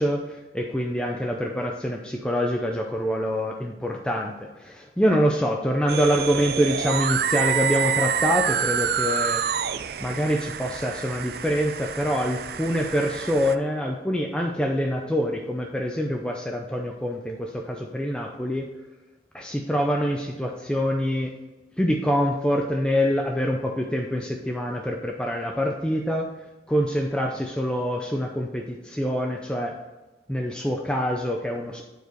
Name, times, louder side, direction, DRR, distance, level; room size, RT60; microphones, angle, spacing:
voice 1, 0.0-9.4 10.0-18.7 19.3-21.3 21.8-26.3 26.7-29.8 30.3-31.9, equal, 5° left, 1 dB, 0.5 m, -25 dB
sound 1, 5.9-13.5, right 7 dB, 60° right, 0.4 m, -27 dB
9.4 x 4.8 x 4.5 m, 1.1 s
head